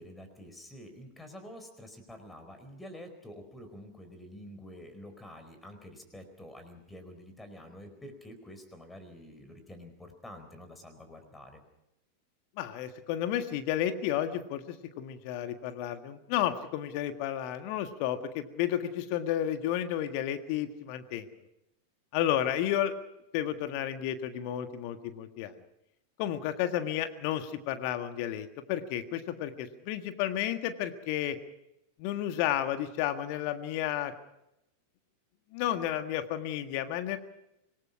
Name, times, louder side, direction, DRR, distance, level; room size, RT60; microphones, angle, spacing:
voice 1, 0.0-11.6, equal, 5° left, 7 dB, 4.5 m, -48 dB
voice 2, 12.6-21.3 22.1-22.9 23.3-25.5 26.2-31.4 32.0-34.1 35.5-37.2, left 11 dB, 45° left, 9 dB, 1.7 m, -32 dB
26.0 x 20.0 x 6.0 m, 0.85 s
figure-of-eight pair, 90°, 0 cm